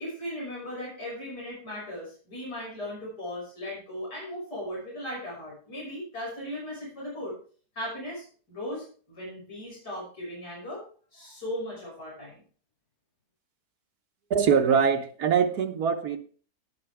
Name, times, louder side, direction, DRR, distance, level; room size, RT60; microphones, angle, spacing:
voice 1, 0.0-7.3 7.7-10.8 11.1-12.4, left 1 dB, 85° left, 6.5 m, -37 dB
voice 2, 14.3-16.2, right 7 dB, 70° right, 1.5 m, -23 dB
18.0 x 6.3 x 3.5 m
omnidirectional pair, 1.7 m